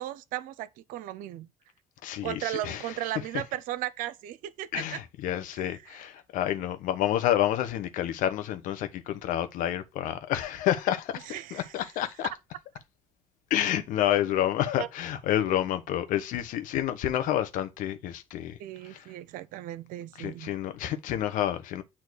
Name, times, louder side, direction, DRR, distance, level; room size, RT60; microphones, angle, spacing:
voice 1, 0.0-1.5 2.2-5.0 5.7-5.8 11.3-11.9 14.8-14.9 18.6-20.5, right 14 dB, 70° right, 0.7 m, -36 dB
voice 2, 2.0-2.8 4.7-12.3 13.5-18.6 18.9-19.0 20.2-21.8, left 12 dB, 70° left, 1.2 m, -29 dB
8.6 x 3.1 x 6.3 m
hypercardioid pair, 55°, 14 cm